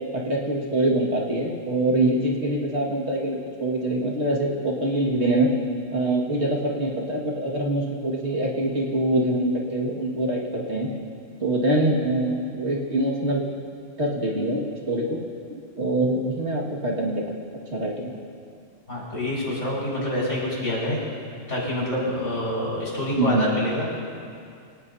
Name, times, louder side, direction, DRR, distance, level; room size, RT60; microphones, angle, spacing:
voice 1, 0.1-5.5 5.9-10.9 11.4-13.4 14.0-15.2 15.5-17.3 17.7-18.1 23.2-23.6, right 1 dB, 55° right, -3 dB, 2.3 m, -24 dB
voice 2, 18.9-21.0 21.5-23.9, left 1 dB, 65° left, -6 dB, 5.6 m, -26 dB
25.5 x 18.5 x 2.8 m, 2.3 s
omnidirectional pair, 1.4 m